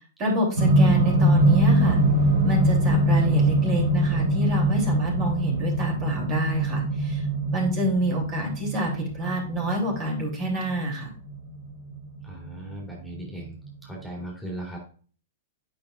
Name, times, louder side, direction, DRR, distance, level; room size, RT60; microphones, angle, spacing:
voice 1, 0.2-2.0 2.4-7.3 7.5-11.1, right 1 dB, 35° right, -1 dB, 3.1 m, -27 dB
sound 1, 0.6-12.7 13.7-13.8, right 1 dB, 65° right, 1.9 m, -23 dB
voice 2, 12.2-13.5 13.8-14.8, right 1 dB, ahead, -2 dB, 2.6 m, -37 dB
8.5 x 5.5 x 2.5 m, 0.41 s
hypercardioid pair, 125°, 0 cm